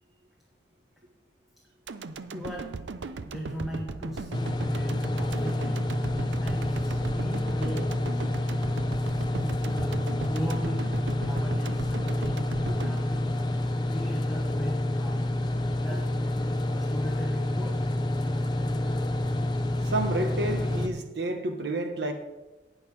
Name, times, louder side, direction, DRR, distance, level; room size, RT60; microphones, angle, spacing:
sound 1, 1.9-14.1 14.5-14.6, right 3 dB, 80° right, 0.6 m, -38 dB
voice 1, 2.3-2.7 3.2-5.8 6.4-7.9 8.9-13.3 13.9-15.3 15.7-16.1 16.6-17.9, equal, ahead, -2 dB, 1.2 m, -39 dB
sound 2, 4.3-20.9, left 1 dB, 25° left, 0.7 m, -28 dB
voice 2, 19.8-22.1, right 2 dB, 65° right, 5 dB, 1.4 m, -30 dB
18.5 x 6.4 x 3.4 m, 1.1 s
head